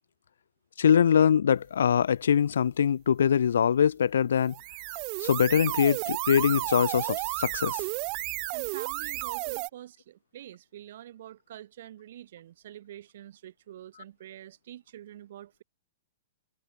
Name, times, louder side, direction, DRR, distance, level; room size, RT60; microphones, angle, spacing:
voice 1, 0.8-4.5 5.2-7.8, left 8 dB, 85° left, 0.4 m, -23 dB
sound 1, 4.4-9.7, right 36 dB, 35° right, 1.3 m, -32 dB
voice 2, 8.5-15.6, right 12 dB, 60° right, 5.2 m, -46 dB
hypercardioid pair, 155°, 0 cm